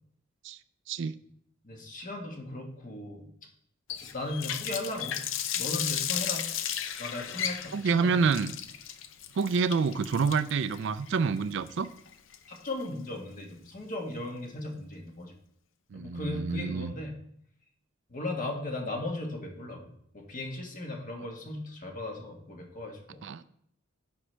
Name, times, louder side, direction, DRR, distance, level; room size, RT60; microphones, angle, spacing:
voice 1, 1.6-3.3 4.0-5.2 5.5-6.5 7.0-8.2 12.5-15.3 15.9-17.1 18.1-23.2, left 2 dB, 40° left, 1 dB, 1.5 m, -37 dB
Water tap faucet, 3.9-12.8, left 9 dB, 70° left, 0.5 m, -35 dB
voice 2, 7.7-8.5 9.4-11.9 15.9-16.9 23.2-23.4, right 5 dB, 65° right, 13 dB, 0.4 m, -27 dB
9.7 x 6.2 x 3.3 m, 0.70 s
head